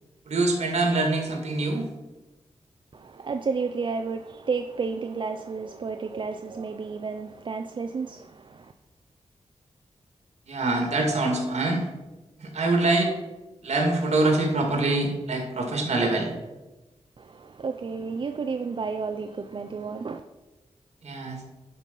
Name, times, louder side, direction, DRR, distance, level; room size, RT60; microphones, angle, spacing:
voice 1, 0.3-1.9 10.5-11.8 12.4-13.1 13.6-16.3 21.0-21.4, right 2 dB, 60° right, 2.2 m, -24 dB
voice 2, 2.9-8.7 17.2-20.2, right 5 dB, 40° right, 0.4 m, -32 dB
11.0 x 5.4 x 5.3 m
wide cardioid pair, 180°, 12 cm